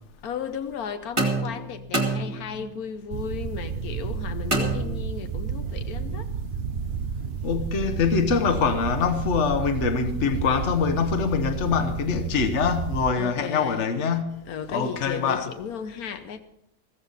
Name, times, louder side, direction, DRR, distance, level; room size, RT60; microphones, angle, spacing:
voice 1, 0.2-6.3 13.1-13.8 14.5-16.4, left 7 dB, 85° left, 1.3 m, -35 dB
sound 1, 1.2-2.8 4.5-5.5, right 2 dB, 20° right, 1.9 m, -27 dB
sound 2, 3.1-13.1, right 6 dB, 50° right, 1.0 m, -31 dB
voice 2, 7.4-14.4 14.7-15.5, left 5 dB, 55° left, 1.4 m, -24 dB
15.5 x 14.5 x 4.1 m
omnidirectional pair, 1.5 m